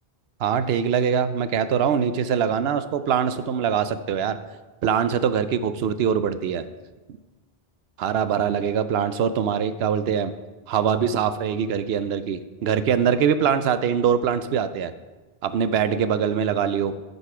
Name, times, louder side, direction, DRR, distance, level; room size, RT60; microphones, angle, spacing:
voice 1, 0.4-4.4 4.8-6.6 8.0-10.3 10.7-14.9 15.4-17.0, right 7 dB, 80° right, 12 dB, 0.8 m, -23 dB
10.0 x 5.4 x 4.8 m, 1.2 s
omnidirectional pair, 1.0 m